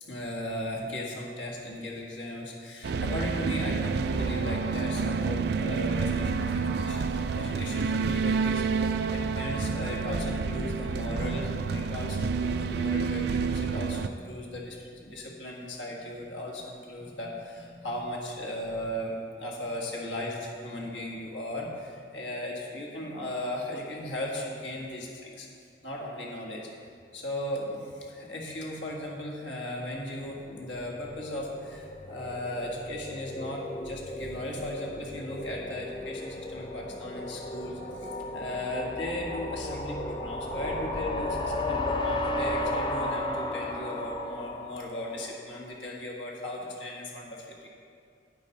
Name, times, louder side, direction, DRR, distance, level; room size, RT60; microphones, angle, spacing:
voice 1, 0.0-25.5 25.8-26.7 27.1-47.7, left 1 dB, 90° left, -2 dB, 1.8 m, -37 dB
sound 1, 2.8-14.1, right 5 dB, 60° right, 0.3 m, -29 dB
sound 2, 30.1-45.3, left 1 dB, 25° left, 0.5 m, -34 dB
10.5 x 9.0 x 4.2 m, 2.3 s
head